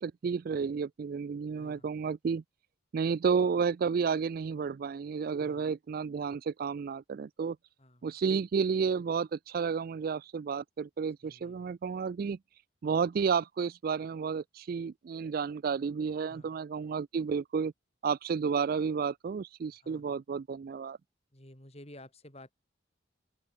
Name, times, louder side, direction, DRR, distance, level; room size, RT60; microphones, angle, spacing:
voice 1, 0.0-2.4 2.9-7.6 8.0-12.4 12.8-17.7 18.0-21.0, right 6 dB, 45° right, 0.3 m, -31 dB
voice 2, 1.6-1.9 5.4-5.8 7.8-8.2 11.2-11.7 16.3-16.6 19.8-20.2 21.3-22.5, left 1 dB, 30° left, 8.0 m, -53 dB
open air
head